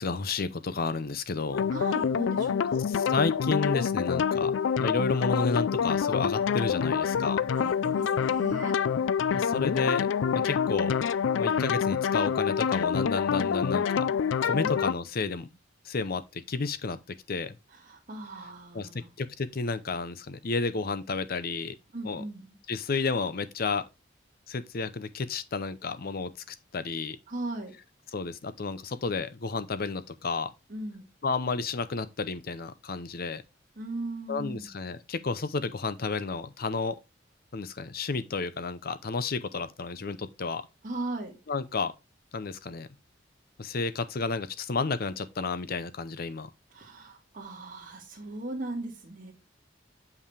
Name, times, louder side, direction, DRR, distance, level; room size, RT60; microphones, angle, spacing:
voice 1, 0.0-1.7 2.9-4.5 4.8-7.4 9.3-10.1 10.3-11.0 11.4-14.0 14.4-15.5 15.8-17.0 17.3-17.6 18.7-21.8 22.0-22.2 22.7-23.8 24.5-27.2 28.1-30.5 31.2-33.4 34.3-37.0 37.5-40.6 41.5-41.9 42.3-42.9 43.6-46.5, left 4 dB, 55° left, 0.6 m, -31 dB
sound 1, 1.5-14.9, left 7 dB, 90° left, 0.4 m, -27 dB
voice 2, 1.7-2.8 7.6-8.8 14.6-14.7 17.7-19.1 21.9-22.6 27.3-27.7 30.7-31.1 33.8-34.7 40.8-41.4 46.7-49.3, right 2 dB, 45° right, 1.8 m, -38 dB
7.1 x 5.5 x 3.3 m
head